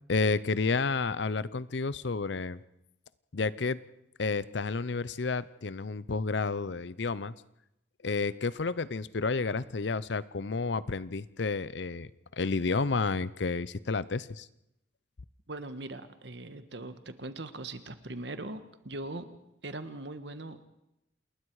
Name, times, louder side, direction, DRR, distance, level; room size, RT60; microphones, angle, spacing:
voice 1, 0.1-2.6 3.3-3.8 4.2-7.3 8.0-14.5, left 4 dB, 70° left, 18 dB, 0.7 m, -31 dB
voice 2, 15.5-19.3 19.6-20.7, right 2 dB, 70° right, 10 dB, 1.6 m, -40 dB
28.5 x 20.5 x 4.9 m, 0.85 s
head